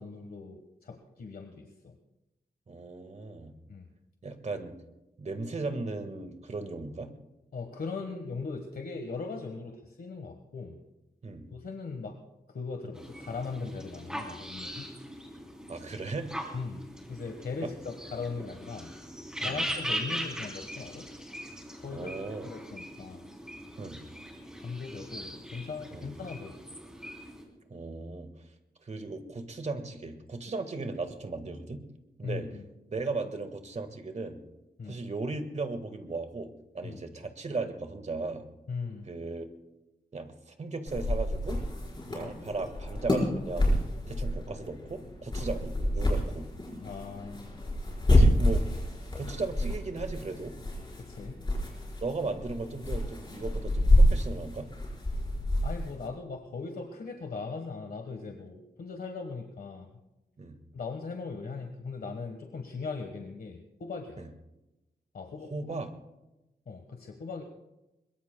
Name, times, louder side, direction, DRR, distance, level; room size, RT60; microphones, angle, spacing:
voice 1, 0.0-1.9 3.7-3.9 7.5-10.8 11.5-12.1 12.5-14.9 16.5-18.9 19.4-21.1 21.8-22.1 22.4-23.3 24.6-26.6 32.2-32.6 34.8-35.0 36.8-37.0 38.7-39.1 42.1-42.3 46.8-47.5 51.0-51.4 55.6-59.9 60.7-64.2 65.1-65.8 66.7-67.4, left 4 dB, 70° left, 4 dB, 1.4 m, -39 dB
voice 2, 2.7-3.5 4.2-4.7 5.2-7.1 11.2-11.5 15.7-16.3 19.4-19.6 21.9-22.5 23.8-24.0 25.9-26.1 27.7-28.3 28.8-31.8 32.2-32.5 32.9-34.4 34.9-36.5 36.7-38.4 39.1-39.5 40.1-40.3 40.6-41.6 42.1-43.7 44.1-46.5 48.1-48.6 49.1-50.5 52.0-54.7 60.4-60.5 64.2-64.3 65.5-65.9, right 3 dB, 45° right, 7 dB, 1.6 m, -36 dB
sound 1, 12.9-27.4, equal, 5° right, 3.3 m, -40 dB
sound 2, 40.9-56.1, left 1 dB, 30° left, 4.7 m, -28 dB
22.5 x 22.0 x 2.2 m, 0.97 s
wide cardioid pair, 120°, 16 cm